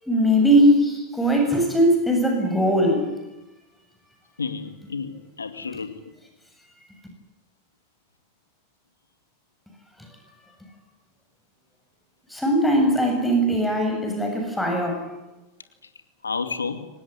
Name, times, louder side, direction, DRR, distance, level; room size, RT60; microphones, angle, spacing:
voice 1, 0.0-3.1 12.3-15.1, equal, 5° left, 3 dB, 7.5 m, -20 dB
voice 2, 4.4-6.1 16.2-16.8, left 5 dB, 90° left, 9 dB, 2.5 m, -31 dB
24.5 x 19.0 x 10.0 m, 0.98 s
hypercardioid pair, 90°, 0 cm